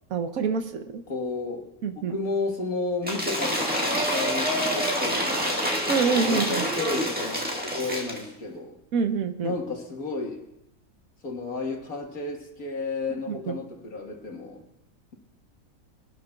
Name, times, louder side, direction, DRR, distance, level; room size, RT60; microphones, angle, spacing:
voice 1, 0.1-1.0 1.8-2.1 5.9-6.6 8.9-9.5 13.3-13.6, right 5 dB, 65° right, 8 dB, 1.3 m, -26 dB
voice 2, 1.1-1.7 2.0-5.7 6.2-8.8 9.4-10.4 11.2-14.6, left 3 dB, 70° left, 2 dB, 2.1 m, -32 dB
Cheering / Applause / Crowd, 3.0-8.2, equal, 5° right, 1.5 m, -27 dB
23.0 x 12.0 x 2.4 m, 0.89 s
omnidirectional pair, 1.6 m